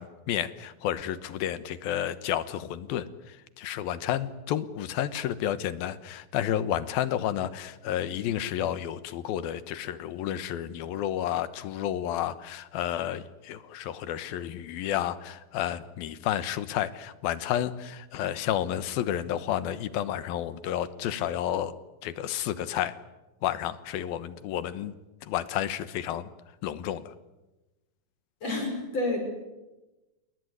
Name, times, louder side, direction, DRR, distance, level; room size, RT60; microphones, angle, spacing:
voice 1, 0.0-21.7 22.0-23.0 23.4-24.9 25.2-26.3 26.6-27.1, left 11 dB, 90° left, 14 dB, 3.0 m, -31 dB
voice 2, 28.4-29.2, left 2 dB, 45° left, 3 dB, 7.2 m, -29 dB
29.0 x 19.5 x 9.8 m, 1.1 s
omnidirectional pair, 4.1 m